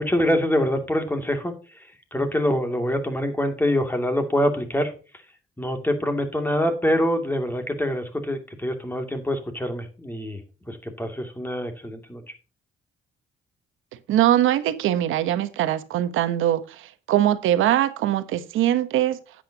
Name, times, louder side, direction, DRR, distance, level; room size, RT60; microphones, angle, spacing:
voice 1, 0.0-4.9 5.6-10.4 10.7-12.3, equal, 10° left, 2.6 m, -25 dB
voice 2, 14.1-19.2, right 12 dB, 85° right, 1.1 m, -22 dB
9.9 x 9.0 x 2.9 m
cardioid pair, 90°, 20 cm